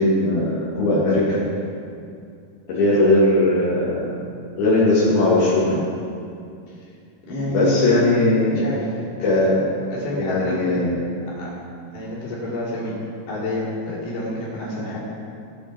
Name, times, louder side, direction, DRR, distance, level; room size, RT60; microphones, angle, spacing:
voice 1, 0.0-1.4 2.7-4.1 4.6-5.8 7.5-8.7 9.2-9.7 10.2-11.1, left 2 dB, 75° left, -8 dB, 3.8 m, -19 dB
voice 2, 7.3-7.9 8.5-8.8 9.3-9.5 9.9-10.6 11.4-11.5 11.9-13.0 13.3-15.0, left 1 dB, 60° left, -6 dB, 4.7 m, -28 dB
16.5 x 10.0 x 4.4 m, 2.4 s
omnidirectional pair, 4.4 m